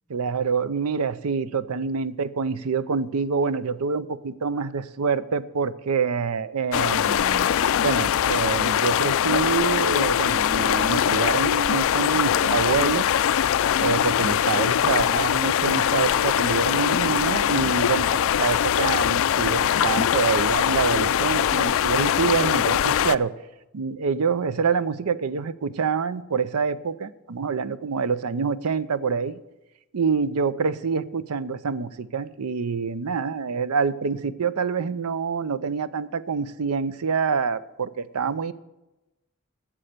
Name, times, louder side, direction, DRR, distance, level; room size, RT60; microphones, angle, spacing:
voice 1, 0.1-7.5 7.8-13.1 13.8-23.3 23.7-29.4 29.9-38.5, right 5 dB, 90° right, 16 dB, 0.6 m, -26 dB
sound 1, 6.7-23.2, left 9 dB, 65° left, 0.4 m, -22 dB
13.0 x 7.7 x 6.7 m, 1.0 s
head